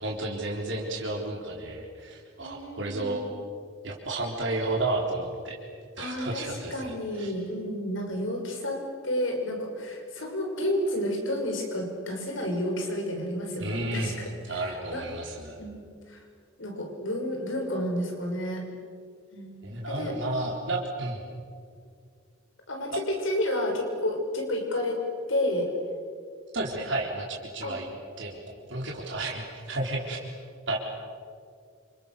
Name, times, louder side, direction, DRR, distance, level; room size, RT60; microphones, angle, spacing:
voice 1, 0.0-3.2 3.8-5.6 6.0-7.3 13.6-15.6 19.6-21.2 26.5-27.9 28.2-28.4 28.7-30.3 30.7-30.8, right 2 dB, 60° right, -1 dB, 4.0 m, -32 dB
voice 2, 2.4-3.3 6.0-15.0 15.6-16.2 16.6-18.6 19.3-19.5 19.9-20.2 22.7-25.0 25.3-25.7 27.6-27.8, left 1 dB, 75° left, 2 dB, 6.3 m, -31 dB
28.0 x 27.5 x 6.9 m, 2.2 s
head